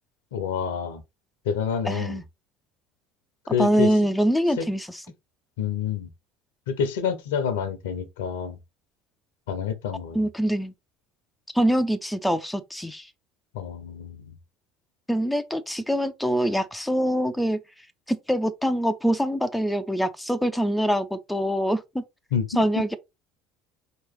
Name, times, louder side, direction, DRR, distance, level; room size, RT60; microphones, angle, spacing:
voice 1, 0.3-1.0 1.4-2.2 3.5-3.9 4.6-4.7 5.6-6.1 6.7-8.6 9.5-10.3 13.5-14.3 22.3-22.6, left 7 dB, 70° left, 0.7 m, -28 dB
voice 2, 1.9-2.2 3.6-4.9 10.1-10.7 11.5-13.1 15.1-17.6 18.1-22.0 22.6-23.0, equal, 5° left, 0.5 m, -24 dB
4.7 x 3.0 x 3.0 m
figure-of-eight pair, 65°, 0 cm